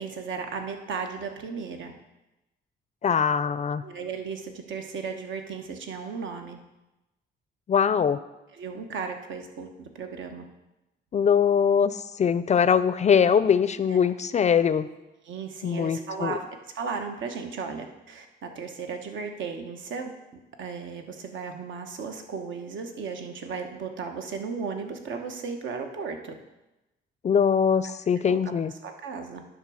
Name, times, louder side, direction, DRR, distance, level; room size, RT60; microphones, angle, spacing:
voice 1, 0.0-1.9 3.8-6.6 8.5-10.4 13.9-14.1 15.2-16.5 16.7-20.1 20.6-26.3 28.2-28.4 28.8-29.4, right 5 dB, 70° right, 5 dB, 1.1 m, -35 dB
voice 2, 3.0-3.8 7.7-8.2 11.1-11.9 12.2-14.9 15.6-16.3 27.2-28.7, left 7 dB, 35° left, 14 dB, 0.4 m, -22 dB
10.0 x 3.8 x 6.3 m, 0.99 s
cardioid pair, 90°, 20 cm